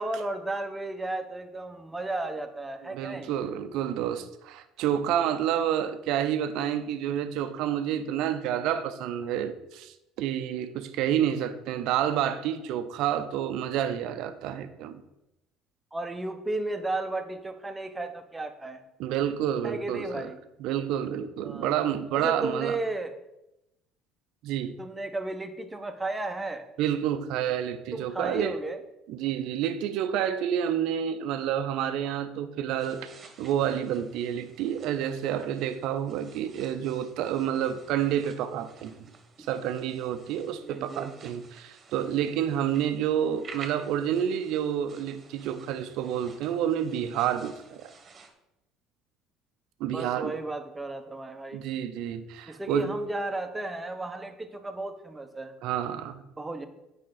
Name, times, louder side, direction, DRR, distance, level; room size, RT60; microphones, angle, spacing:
voice 1, 0.0-3.3 15.9-18.8 19.6-20.4 21.4-21.7 22.1-23.1 24.8-26.7 27.9-28.8 40.6-41.1 49.9-51.6 52.5-55.5 56.4-56.7, right 2 dB, 15° right, 7 dB, 0.9 m, -34 dB
voice 2, 2.8-15.0 19.0-20.3 20.6-22.8 24.4-24.7 26.8-28.6 29.1-33.1 33.4-38.9 39.5-47.8 49.8-50.3 51.5-52.9 55.6-56.2, right 10 dB, 65° right, 10 dB, 0.6 m, -29 dB
sound 1, 32.8-48.3, right 4 dB, 35° right, 1.3 m, -52 dB
8.5 x 5.3 x 3.9 m, 0.88 s
hypercardioid pair, 65°, 0 cm